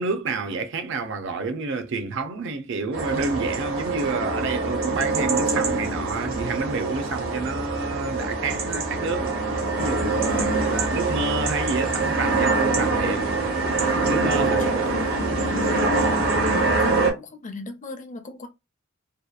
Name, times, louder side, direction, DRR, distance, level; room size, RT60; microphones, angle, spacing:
voice 1, 0.0-13.3 13.8-14.6, right 3 dB, 65° right, 0.5 m, -29 dB
sound 1, 2.9-17.1, right 3 dB, 80° right, 0.9 m, -24 dB
voice 2, 10.3-10.8 14.4-15.9 16.5-18.5, left 3 dB, 40° left, 0.6 m, -37 dB
2.8 x 2.2 x 2.3 m
head